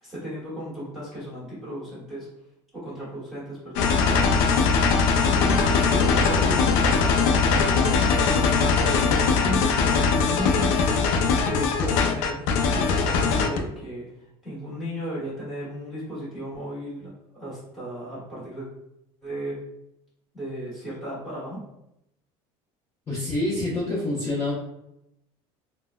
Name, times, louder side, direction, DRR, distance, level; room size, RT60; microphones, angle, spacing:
voice 1, 0.0-2.3 2.7-4.5 5.4-10.8 11.2-14.1 14.4-18.7 19.2-19.6 20.3-21.6, equal, ahead, -11 dB, 1.3 m, -35 dB
sound 1, 3.8-13.6, left 5 dB, 85° left, 0.4 m, -21 dB
voice 2, 23.1-24.5, left 2 dB, 25° left, -10 dB, 0.8 m, -26 dB
3.6 x 2.1 x 2.3 m, 0.82 s
cardioid pair, 170°, 12 cm